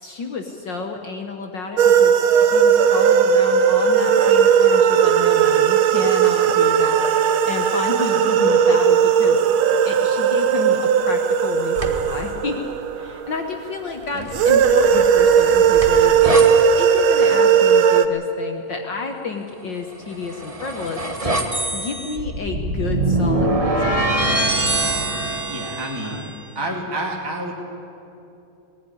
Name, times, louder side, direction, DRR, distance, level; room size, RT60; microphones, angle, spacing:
voice 1, 0.0-9.4 9.7-12.5 13.0-16.4 16.8-21.0 21.7-24.4 26.0-26.3, left 4 dB, 60° left, 3 dB, 1.1 m, -31 dB
sound 1, 1.8-13.5 14.3-18.1, right 7 dB, 85° right, 1.1 m, -16 dB
sound 2, 11.7-12.2 14.1-16.5 20.0-26.4, right 2 dB, 40° right, 0.5 m, -24 dB
voice 2, 25.5-26.2 26.5-27.5, right 1 dB, 10° right, -1 dB, 1.6 m, -29 dB
20.0 x 15.0 x 9.7 m, 2.8 s
omnidirectional pair, 3.5 m